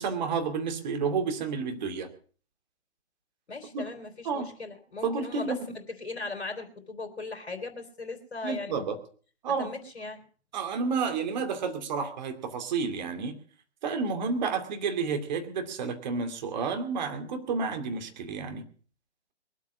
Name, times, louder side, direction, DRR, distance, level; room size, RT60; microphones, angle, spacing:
voice 1, 0.0-2.1 3.7-3.8 4.3-4.5 5.0-5.6 8.4-9.0 9.4-9.7 10.5-13.4 13.8-18.7, right 5 dB, 40° right, 6 dB, 2.6 m, -30 dB
voice 2, 3.5-8.8 9.6-10.2, left 3 dB, 70° left, 5 dB, 3.5 m, -38 dB
22.0 x 8.3 x 6.2 m, 0.42 s
figure-of-eight pair, 135°, 34 cm